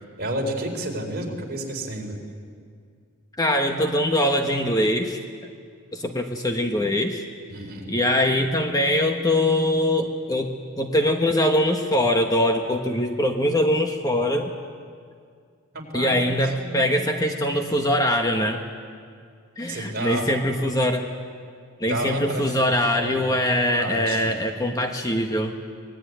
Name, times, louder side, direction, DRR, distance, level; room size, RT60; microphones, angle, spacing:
voice 1, 0.2-2.2 7.5-8.0 15.7-16.9 19.7-20.3 21.8-22.6 23.0-23.2 23.8-24.3, right 1 dB, 45° right, 1 dB, 4.2 m, -31 dB
voice 2, 3.3-5.2 5.9-7.2 7.9-14.5 15.9-18.6 19.6-21.1 21.8-25.5, left 1 dB, 15° left, 4 dB, 1.2 m, -22 dB
24.5 x 19.5 x 9.3 m, 2.2 s
head